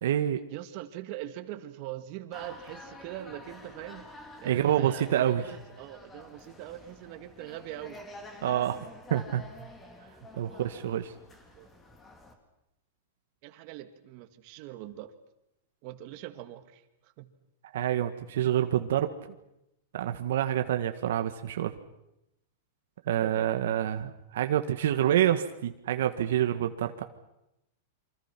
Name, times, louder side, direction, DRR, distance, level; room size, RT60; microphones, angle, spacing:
voice 1, 0.0-0.4 4.4-5.4 8.4-8.8 9.1-9.5 10.3-11.1 17.7-19.1 19.9-21.7 23.1-27.0, right 11 dB, 75° right, 7 dB, 1.6 m, -27 dB
voice 2, 0.5-8.0 11.5-11.7 13.4-15.1 15.8-16.8 17.2-17.3 23.2-23.5, right 13 dB, 45° right, 8 dB, 2.1 m, -42 dB
sound 1, 2.3-12.3, left 1 dB, 15° left, 3.4 m, -49 dB
28.0 x 25.5 x 6.0 m, 0.86 s
supercardioid pair, 145°, 0 cm